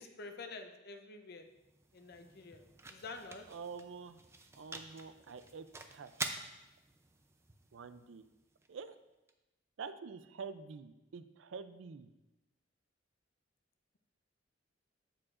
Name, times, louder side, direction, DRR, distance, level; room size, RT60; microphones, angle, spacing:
voice 1, 0.0-1.4 1.9-2.6 2.9-3.4, left 3 dB, 50° left, 6 dB, 0.7 m, -48 dB
sound 1, 1.2-9.3, right 3 dB, 15° right, 0.5 m, -48 dB
voice 2, 3.5-4.2 4.5-6.1 7.7-8.2 8.7-9.0 9.8-12.1, right 5 dB, 70° right, 12 dB, 0.4 m, -47 dB
14.5 x 4.9 x 2.5 m, 0.99 s
head